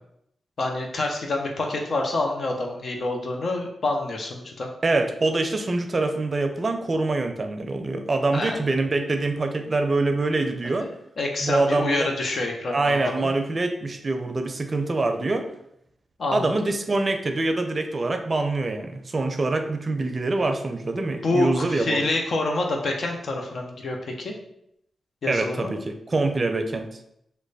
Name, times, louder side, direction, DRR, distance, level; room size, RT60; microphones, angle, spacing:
voice 1, 0.6-4.7 8.3-8.6 10.6-10.7 11.2-13.3 16.2-16.5 21.2-24.3 25.2-25.7, left 2 dB, 65° left, 2 dB, 0.6 m, -27 dB
voice 2, 4.8-10.9 11.4-12.1 12.7-15.5 16.3-22.0 25.3-27.0, right 2 dB, 45° right, 6 dB, 0.4 m, -25 dB
3.1 x 2.1 x 3.9 m, 0.75 s
supercardioid pair, 40°, 0 cm